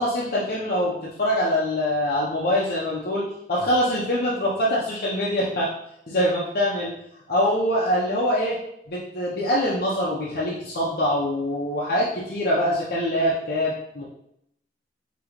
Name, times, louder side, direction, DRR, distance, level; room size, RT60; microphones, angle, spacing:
voice 1, 0.0-5.7 6.1-6.9 7.3-8.6 8.9-14.0, equal, 55° left, -5 dB, 0.8 m, -24 dB
5.1 x 3.0 x 3.0 m, 0.77 s
head